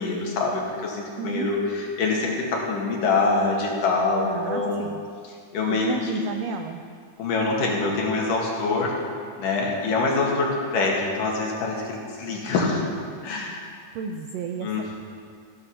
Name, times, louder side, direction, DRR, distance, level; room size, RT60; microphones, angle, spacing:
voice 1, 0.0-4.8 5.5-6.0 7.2-8.9 9.4-12.8 13.2-13.6 14.6-15.0, left 3 dB, 75° left, -2 dB, 3.6 m, -25 dB
voice 2, 1.2-1.5 4.2-5.0 5.7-6.8 13.9-15.0, right 5 dB, 85° right, 5 dB, 1.4 m, -32 dB
15.0 x 11.0 x 5.9 m, 2.2 s
omnidirectional pair, 3.8 m